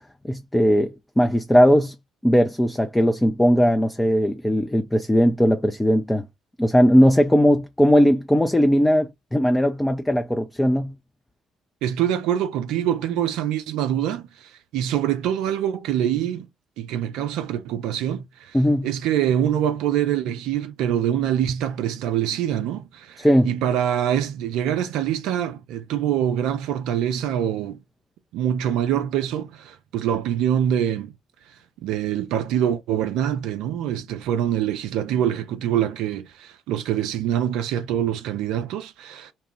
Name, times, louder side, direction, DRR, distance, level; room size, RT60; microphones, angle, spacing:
voice 1, 0.2-1.9 2.2-6.3 6.6-10.9 18.5-18.9 23.2-23.5, equal, 10° left, 0.4 m, -18 dB
voice 2, 11.8-16.5 16.8-18.6 18.8-27.8 28.3-31.1 31.8-39.3, right 10 dB, 65° right, 0.3 m, -25 dB
2.9 x 2.2 x 2.9 m
figure-of-eight pair, 50°, 0 cm